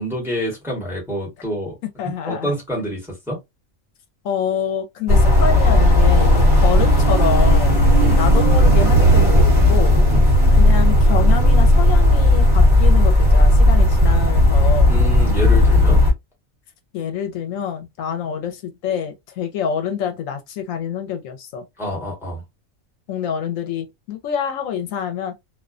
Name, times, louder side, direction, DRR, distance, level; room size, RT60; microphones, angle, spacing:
voice 1, 0.0-1.7 2.0-3.0 3.3-3.4 8.0-8.3 10.1-10.3 14.9-16.0 21.8-22.4, equal, ahead, 0.9 m, -27 dB
voice 2, 2.0-2.5 4.2-7.8 8.2-10.0 10.5-14.9 16.9-21.6 23.1-25.3, left 8 dB, 80° left, 1.0 m, -26 dB
sound 1, 5.1-16.1, left 1 dB, 25° right, 1.1 m, -14 dB
2.4 x 2.1 x 2.4 m
omnidirectional pair, 1.4 m